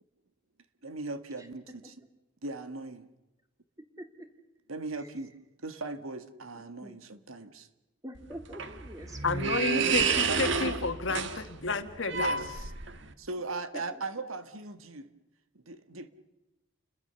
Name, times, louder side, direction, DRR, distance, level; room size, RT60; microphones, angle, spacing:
voice 1, 0.8-1.9 2.4-3.1 4.7-5.3 5.6-7.7 9.7-10.7 12.1-12.7 13.2-15.1 15.5-16.1, right 2 dB, 90° right, 1.7 m, -38 dB
voice 2, 4.0-4.3 6.8-7.0 8.0-9.2 13.7-14.0, right 1 dB, 15° right, 2.4 m, -44 dB
sound 1, 8.2-13.1, right 5 dB, 65° right, 1.5 m, -30 dB
voice 3, 9.2-12.4, left 4 dB, 65° left, 1.6 m, -31 dB
29.5 x 21.5 x 6.9 m
head